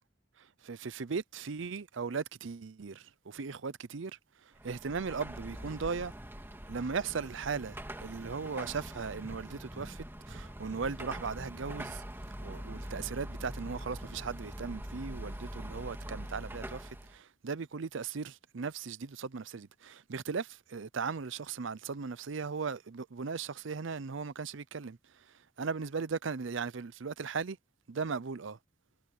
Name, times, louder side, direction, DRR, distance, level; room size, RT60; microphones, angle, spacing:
voice 1, 0.4-6.1 6.7-12.0 12.4-27.6 27.9-28.6, right 5 dB, 65° right, 0.6 m, -38 dB
Car passing by / Traffic noise roadway noise / Engine, 4.5-17.2, equal, 10° right, 2.7 m, -43 dB
head